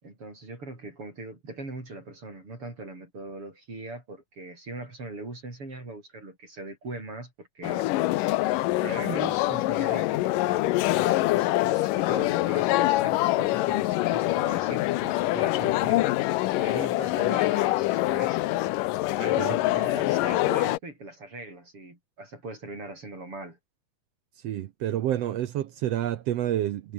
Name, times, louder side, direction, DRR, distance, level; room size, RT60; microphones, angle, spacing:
voice 1, 0.0-7.9 8.8-16.1 16.6-18.4 19.2-23.6, right 2 dB, 40° right, 7.8 m, -40 dB
sound 1, 7.6-20.8, left 18 dB, 80° left, 2.3 m, -25 dB
voice 2, 24.4-26.9, right 12 dB, 70° right, 1.6 m, -29 dB
omnidirectional pair, 3.9 m